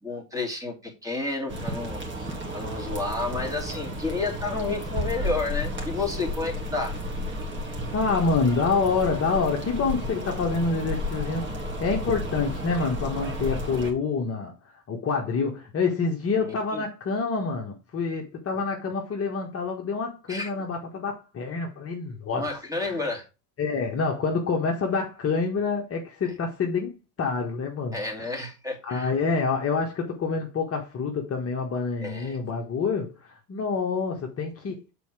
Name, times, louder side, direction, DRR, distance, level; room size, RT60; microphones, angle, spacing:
voice 1, 0.0-6.9 16.4-16.8 20.3-20.5 22.3-23.2 27.9-29.1 32.0-32.4, left 3 dB, 5° right, 2.7 m, -31 dB
sound 1, 1.5-13.9, left 1 dB, 25° right, 2.6 m, -32 dB
voice 2, 7.9-22.5 22.8-23.0 23.6-28.4 28.8-34.8, left 4 dB, 30° left, 1.3 m, -27 dB
6.9 x 4.4 x 4.8 m
hypercardioid pair, 95°, 48 cm